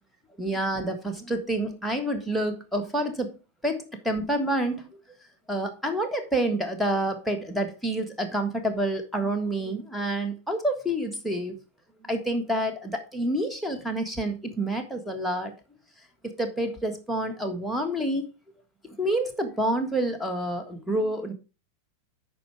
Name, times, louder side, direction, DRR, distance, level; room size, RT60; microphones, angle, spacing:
voice 1, 0.4-3.3 3.6-4.9 5.5-11.6 12.0-15.5 16.2-18.3 19.0-21.3, right 1 dB, ahead, 4 dB, 1.6 m, -28 dB
8.7 x 5.6 x 4.7 m, 0.32 s
figure-of-eight pair, 90°, 0 cm